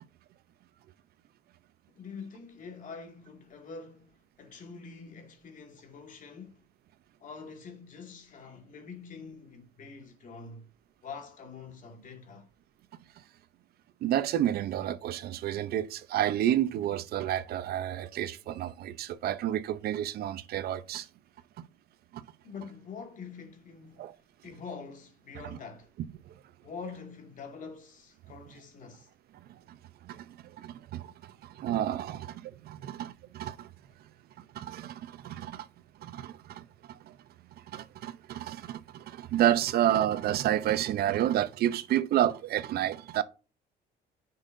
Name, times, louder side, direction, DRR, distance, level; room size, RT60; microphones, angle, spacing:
voice 1, 1.9-6.6 7.2-10.7 11.0-12.5 22.4-24.2 24.4-25.9 26.6-29.1 31.6-31.7, left 5 dB, 50° left, 2.3 m, -45 dB
voice 2, 14.0-21.1 22.1-22.2 24.0-24.1 25.5-25.6 29.7-29.8 30.0-30.3 30.6-31.1 31.4-33.7 34.5-35.7 36.0-37.1 37.7-43.2, right 12 dB, 65° right, 0.8 m, -30 dB
9.8 x 5.6 x 2.7 m
cardioid pair, 110°, 17 cm